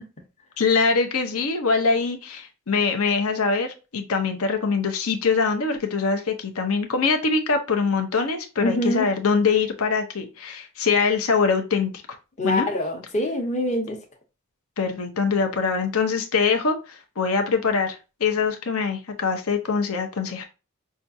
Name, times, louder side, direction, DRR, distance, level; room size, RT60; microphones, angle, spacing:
voice 1, 0.6-11.9 12.4-12.7 14.8-20.4, left 5 dB, 70° left, 0.7 m, -23 dB
voice 2, 8.6-9.1 12.4-14.0, left 1 dB, 35° left, 0.9 m, -25 dB
5.7 x 2.4 x 2.6 m
head